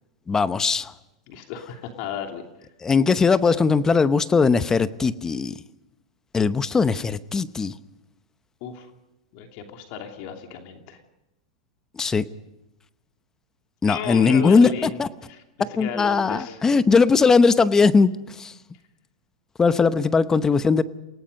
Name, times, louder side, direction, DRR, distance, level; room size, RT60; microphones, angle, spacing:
voice 1, 0.3-0.9 2.8-5.6 6.3-7.7 11.9-12.2 13.8-15.1 15.8-18.5 19.6-20.8, left 4 dB, 15° left, 14 dB, 0.9 m, -19 dB
voice 2, 1.3-2.7 8.6-8.9 9.3-11.0 13.9-15.0 15.3-16.6, left 8 dB, 55° left, 4 dB, 2.8 m, -34 dB
29.0 x 18.5 x 5.4 m, 0.96 s
supercardioid pair, 130°, 3 cm